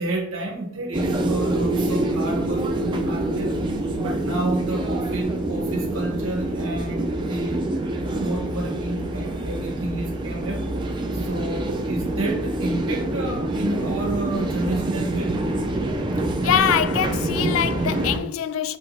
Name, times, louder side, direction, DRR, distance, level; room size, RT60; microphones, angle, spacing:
voice 1, 0.0-3.6 4.0-10.6 11.1-15.4, right 2 dB, 90° right, 1.3 m, -30 dB
sound 1, 0.9-18.2, right 1 dB, 25° right, 0.5 m, -26 dB
voice 2, 16.4-18.8, left 10 dB, 75° left, 0.3 m, -23 dB
5.3 x 2.9 x 2.9 m
head